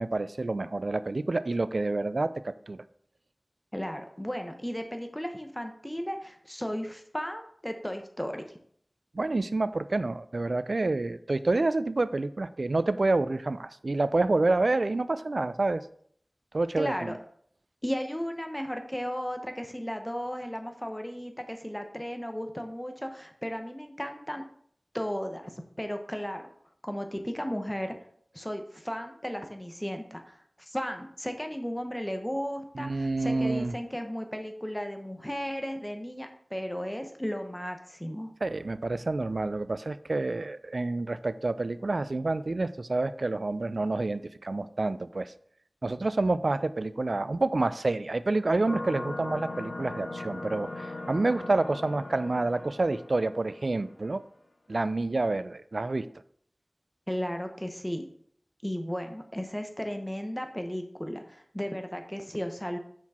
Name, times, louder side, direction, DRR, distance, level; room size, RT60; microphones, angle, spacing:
voice 1, 0.0-2.8 9.1-15.9 16.5-17.1 32.8-33.8 38.4-45.3 45.8-54.2 54.7-56.1, right 2 dB, 75° right, 14 dB, 0.3 m, -28 dB
voice 2, 3.7-8.4 16.8-17.2 17.8-24.4 24.9-26.5 26.8-28.0 28.3-38.3 57.1-58.0 58.6-62.8, equal, 10° left, 5 dB, 0.9 m, -35 dB
sound 1, 48.7-53.9, left 2 dB, 85° left, 0.8 m, -39 dB
6.0 x 4.5 x 4.3 m, 0.63 s
wide cardioid pair, 45°, 0 cm